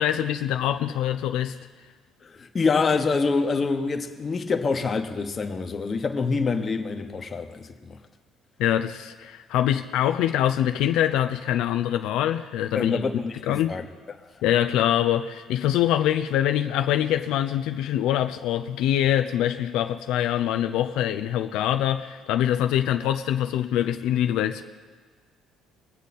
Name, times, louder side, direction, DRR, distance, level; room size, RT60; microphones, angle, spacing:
voice 1, 0.0-1.6 8.6-13.0 13.4-13.7 14.4-24.6, left 11 dB, 80° left, 0.5 m, -24 dB
voice 2, 2.2-8.0 12.7-13.9, left 4 dB, 30° left, 1.1 m, -26 dB
23.0 x 8.2 x 4.2 m
cardioid pair, 130°, 0 cm